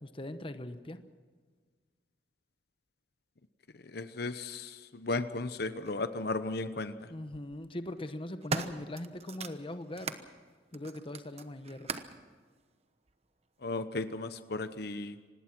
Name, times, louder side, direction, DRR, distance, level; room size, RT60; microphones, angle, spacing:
voice 1, 0.0-1.0 7.1-10.1 10.7-11.9, left 1 dB, 30° left, 10 dB, 1.0 m, -41 dB
voice 2, 3.9-6.9 13.6-15.1, left 3 dB, 60° left, 11 dB, 0.9 m, -35 dB
sound 1, 5.9-6.0 7.1-7.4 8.0-10.3 10.7-12.2 13.1-13.2, right 4 dB, 35° right, 1.0 m, -39 dB
25.5 x 19.0 x 6.1 m, 1.5 s
head